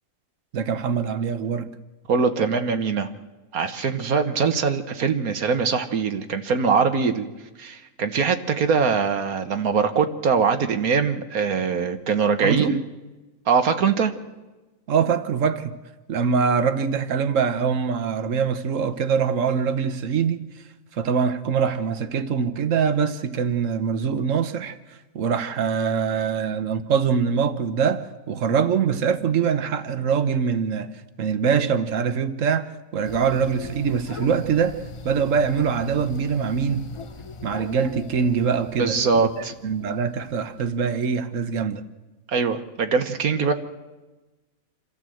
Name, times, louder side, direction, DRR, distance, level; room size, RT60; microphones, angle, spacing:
voice 1, 0.5-1.7 12.4-12.8 14.9-15.8 16.1-20.4 20.9-36.9 37.4-41.8, right 6 dB, 65° right, 1.4 m, -23 dB
voice 2, 2.1-3.1 3.5-7.3 7.6-12.8 13.5-14.1 38.8-39.5 42.3-43.5, right 5 dB, 80° right, 1.6 m, -22 dB
sound 1, 33.0-40.7, left 3 dB, 35° left, 0.5 m, -40 dB
27.5 x 13.5 x 7.8 m
omnidirectional pair, 1.5 m